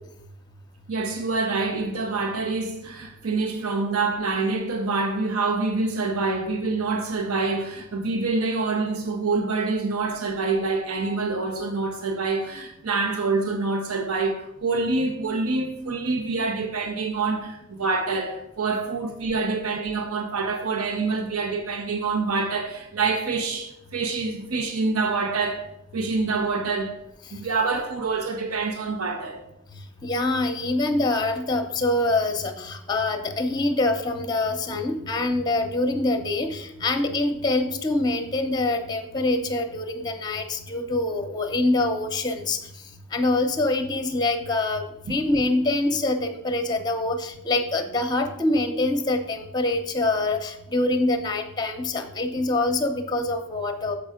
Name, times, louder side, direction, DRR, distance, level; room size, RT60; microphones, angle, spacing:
voice 1, 0.9-27.0 27.3-29.5 45.1-45.2, right 3 dB, 85° right, 0.8 m, -26 dB
voice 2, 30.0-42.6 43.1-53.9, left 2 dB, 20° left, 0.7 m, -25 dB
7.1 x 5.4 x 5.0 m
head